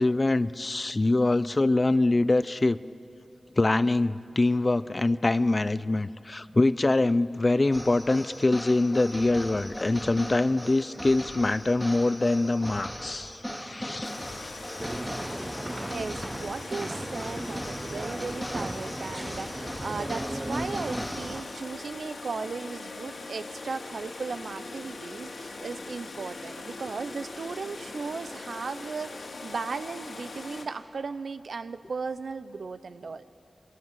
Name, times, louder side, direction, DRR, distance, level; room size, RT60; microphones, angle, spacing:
voice 1, 0.0-2.8 3.6-14.1 14.4-14.5, left 2 dB, 35° left, 16 dB, 0.5 m, -24 dB
sound 1, 7.7-21.8, equal, ahead, 2.2 m, -39 dB
sound 2, 14.0-30.6, left 3 dB, 80° left, 2.8 m, -41 dB
sound 3, 14.8-21.4, right 1 dB, 15° right, 0.8 m, -36 dB
voice 2, 15.9-33.2, right 4 dB, 80° right, 12 dB, 0.8 m, -36 dB
27.5 x 23.5 x 7.6 m, 2.8 s
wide cardioid pair, 95°, 0 cm